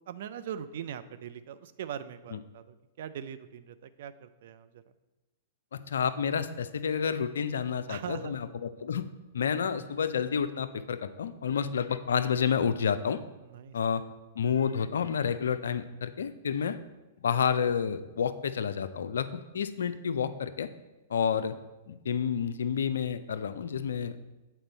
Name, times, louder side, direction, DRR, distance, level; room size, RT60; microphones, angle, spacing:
voice 1, 0.1-4.8 7.9-8.4 9.8-9.9 13.4-13.8, right 9 dB, 60° right, 12 dB, 0.4 m, -41 dB
voice 2, 5.7-9.0 9.3-13.2 13.7-14.0 14.4-16.8 17.2-19.3 19.5-20.7 21.1-21.5 21.9-24.1, left 7 dB, 70° left, 12 dB, 0.4 m, -29 dB
8.1 x 4.3 x 4.0 m, 1.1 s
figure-of-eight pair, 110°, 0 cm